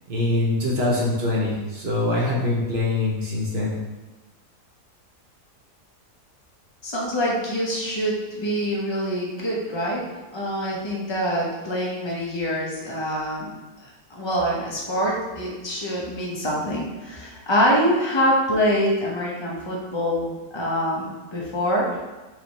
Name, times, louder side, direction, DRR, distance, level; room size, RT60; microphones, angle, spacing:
voice 1, 0.1-3.7, left 2 dB, 45° right, -4 dB, 1.0 m, -23 dB
voice 2, 6.8-10.0 10.3-13.5 14.1-22.0, equal, 40° left, -4 dB, 0.4 m, -25 dB
3.5 x 3.4 x 4.0 m, 1.2 s
omnidirectional pair, 1.8 m